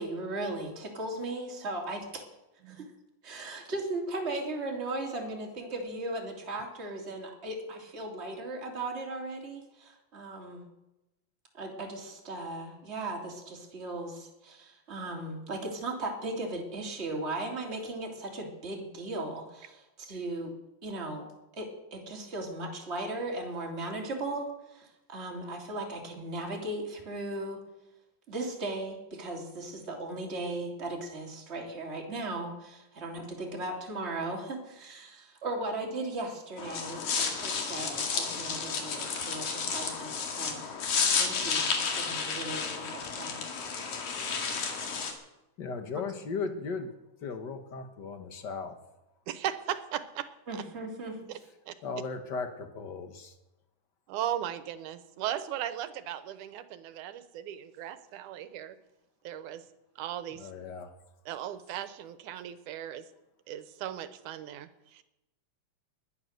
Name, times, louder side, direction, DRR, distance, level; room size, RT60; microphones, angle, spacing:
voice 1, 0.0-2.2 2.7-2.9 3.2-10.6 11.5-20.5 20.8-21.3 21.6-27.6 28.3-40.7 41.2-43.4 50.5-51.2, right 2 dB, 20° right, -1 dB, 3.0 m, -37 dB
sound 1, 36.6-45.1, left 5 dB, 75° left, 3.5 m, -32 dB
voice 2, 45.6-46.9 47.2-48.8 51.8-53.3 60.4-60.9, left 4 dB, 45° left, 6 dB, 1.5 m, -36 dB
voice 3, 49.3-50.6 51.3-51.4 51.7-51.8 54.1-58.8 59.2-59.6 60.0-60.5 61.3-63.1 63.5-65.0, right 11 dB, 85° right, 12 dB, 2.4 m, -37 dB
20.5 x 10.5 x 6.6 m, 0.95 s
omnidirectional pair, 3.4 m